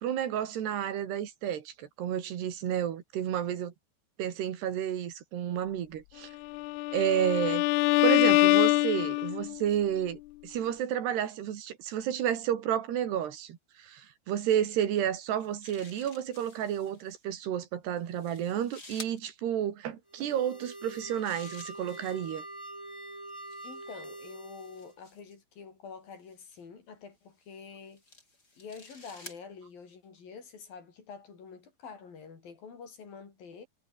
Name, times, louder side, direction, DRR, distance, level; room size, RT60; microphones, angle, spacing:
voice 1, 0.0-3.7 4.2-6.3 6.9-7.7 8.0-22.4, right 10 dB, 80° right, 4.4 m, -31 dB
Bowed string instrument, 6.5-9.6, left 21 dB, 85° left, 2.6 m, -24 dB
sound 1, 15.2-17.1 18.0-19.2 20.8-22.4 23.3-25.4 26.3-26.6 27.4-29.4, left 2 dB, 20° left, 6.7 m, -52 dB
sound 2, 20.1-25.0, right 1 dB, 30° right, 0.4 m, -44 dB
voice 2, 23.6-28.0 28.6-33.7, left 5 dB, 60° left, 6.2 m, -47 dB
omnidirectional pair, 4.7 m